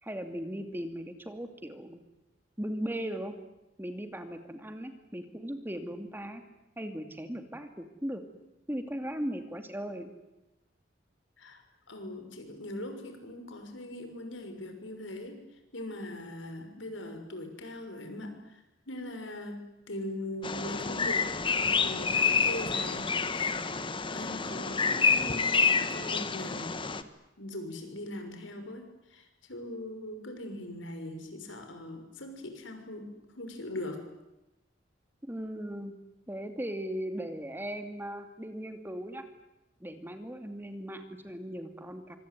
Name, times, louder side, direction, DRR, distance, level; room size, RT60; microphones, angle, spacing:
voice 1, 0.0-2.0 2.6-3.4 3.8-6.4 6.8-8.2 8.7-10.1 35.2-35.9 36.3-39.2 39.8-42.2, equal, 10° right, 7 dB, 2.6 m, -38 dB
voice 2, 11.9-15.4 15.7-19.6 19.9-23.7 24.1-26.9 27.4-34.0, left 1 dB, 85° left, 6 dB, 6.2 m, -41 dB
Bird vocalization bird call bird song, 20.4-27.0, left 5 dB, 25° left, 1.4 m, -28 dB
25.5 x 24.5 x 9.4 m, 0.93 s
head